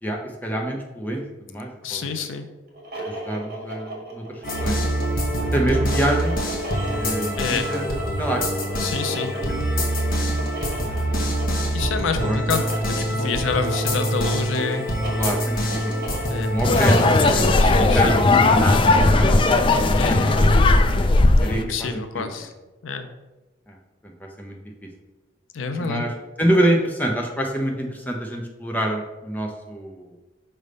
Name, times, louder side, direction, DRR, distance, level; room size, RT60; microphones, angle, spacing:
voice 1, 0.0-1.2 1.5-2.2 3.0-4.8 5.5-6.4 6.9-8.8 9.3-9.6 10.9-11.3 12.2-12.4 15.2-16.2 16.5-17.0 17.3-20.4 21.4-22.4 23.7-23.8 24.0-24.9 25.8-26.1 26.4-30.1, right 1 dB, 10° left, 1 dB, 0.7 m, -27 dB
voice 2, 1.8-2.5 7.4-7.7 8.8-9.3 11.7-14.9 16.3-16.6 17.6-18.2 20.0-20.4 21.6-22.5 22.8-23.1 25.5-26.0, left 5 dB, 80° left, 7 dB, 0.5 m, -28 dB
sound 1, 2.7-18.4, right 1 dB, 50° right, 1.6 m, -35 dB
sound 2, 4.4-17.6, equal, 45° left, 1.0 m, -25 dB
sound 3, 16.6-21.6, left 2 dB, 25° left, 0.3 m, -17 dB
5.4 x 3.4 x 5.2 m, 1.1 s
head